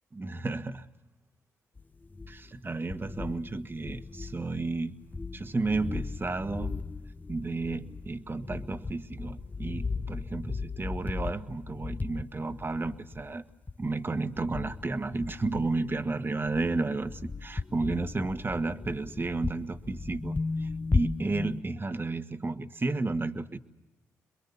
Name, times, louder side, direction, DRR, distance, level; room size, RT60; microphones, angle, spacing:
voice 1, 0.1-0.9 2.3-5.0 5.3-6.8 7.3-13.4 13.8-17.1 17.4-23.6, right 3 dB, 35° right, 9 dB, 1.5 m, -32 dB
sound 1, 1.8-2.6 2.9-4.8 5.1-16.1 16.4-21.6, left 4 dB, 25° left, 0.7 m, -36 dB
26.5 x 22.5 x 7.0 m, 1.0 s
supercardioid pair, 45°, 7 cm